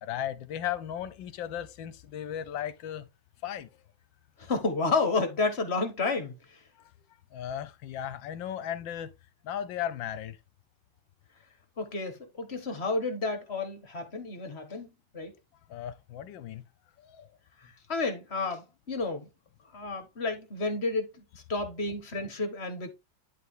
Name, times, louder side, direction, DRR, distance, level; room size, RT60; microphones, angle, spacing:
voice 1, 0.0-3.1 3.4-3.7 7.3-9.1 9.4-10.4 15.7-16.6 17.0-17.3, left 10 dB, 70° left, 1.5 m, -36 dB
voice 2, 4.4-6.6 11.8-14.9 15.1-15.3 17.6-19.3 19.7-22.9, left 3 dB, 35° left, 1.6 m, -31 dB
11.0 x 4.0 x 3.7 m
omnidirectional pair, 2.3 m